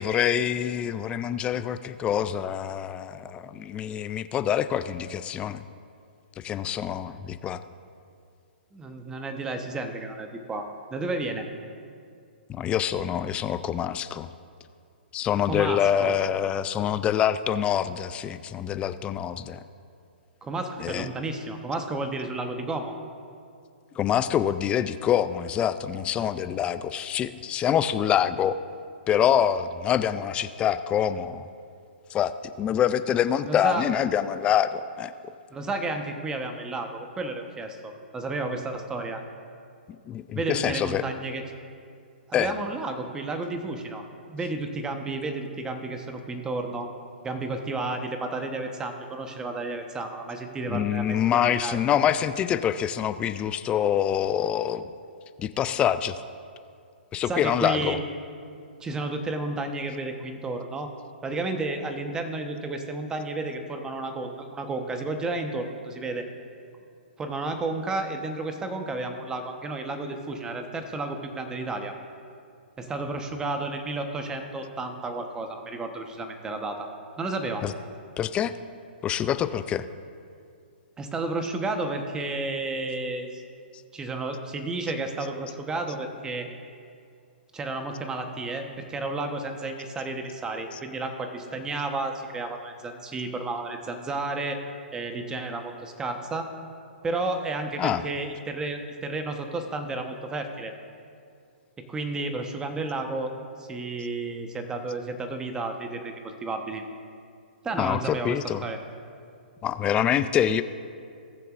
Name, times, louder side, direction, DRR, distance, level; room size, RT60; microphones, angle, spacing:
voice 1, 0.0-5.6 6.4-7.6 12.5-14.3 15.1-19.6 20.8-21.1 24.0-28.6 29.1-31.5 32.1-32.3 32.6-35.1 40.1-41.0 42.3-42.6 50.7-54.8 55.4-56.2 57.1-58.0 77.6-77.7 78.2-78.5 79.0-79.9 90.7-90.8 97.8-98.0 107.7-108.6 109.6-110.6, left 9 dB, 20° left, 12 dB, 0.4 m, -25 dB
voice 2, 8.7-11.4 15.4-16.2 20.4-22.9 33.5-33.9 35.5-39.2 40.3-41.4 42.3-46.9 47.2-51.8 57.3-58.0 58.8-60.9 61.2-66.3 67.2-71.9 72.8-76.9 77.2-77.6 81.0-83.4 83.9-86.5 87.5-94.6 94.9-96.5 97.0-100.7 101.9-103.3 103.6-106.8 107.6-108.8, right 2 dB, 10° right, 5 dB, 1.0 m, -32 dB
19.0 x 6.8 x 2.5 m, 2.4 s
hypercardioid pair, 130°, 6 cm